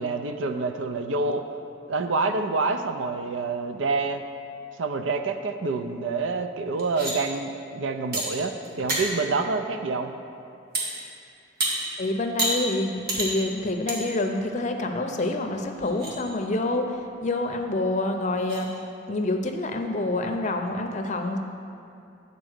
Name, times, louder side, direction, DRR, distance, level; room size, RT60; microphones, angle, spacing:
voice 1, 0.0-1.4 1.9-4.2 4.8-10.1, right 3 dB, 85° right, 7 dB, 0.5 m, -27 dB
sound 1, 6.8-7.1 8.1-8.2 8.6-9.0 10.7-10.9 11.6-11.7 12.4-12.5 13.1-13.3 13.9-14.0 14.4-14.5 15.2-15.3 15.8-16.1 17.8-17.9 18.4-18.6, right 1 dB, 55° right, 1.6 m, -28 dB
voice 2, 12.0-18.7 19.1-21.4, left 2 dB, 40° left, 4 dB, 0.6 m, -27 dB
8.8 x 4.1 x 6.5 m, 2.6 s
head